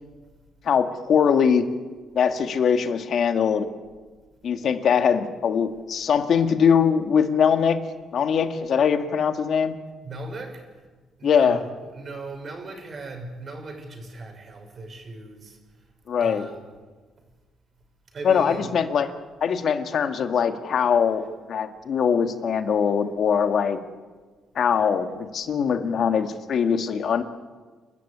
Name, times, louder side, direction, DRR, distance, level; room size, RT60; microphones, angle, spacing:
voice 1, 0.6-1.7 2.1-3.7 4.4-7.8 8.1-9.8 11.2-11.6 16.1-16.5 18.2-19.1 19.4-23.8 24.6-27.2, left 7 dB, 60° left, 8 dB, 2.0 m, -22 dB
voice 2, 10.0-10.6 11.2-15.6 16.2-16.7 18.1-18.7, right 2 dB, 45° right, 4 dB, 6.1 m, -38 dB
29.5 x 13.5 x 9.8 m, 1.4 s
cardioid pair, 90°, 0 cm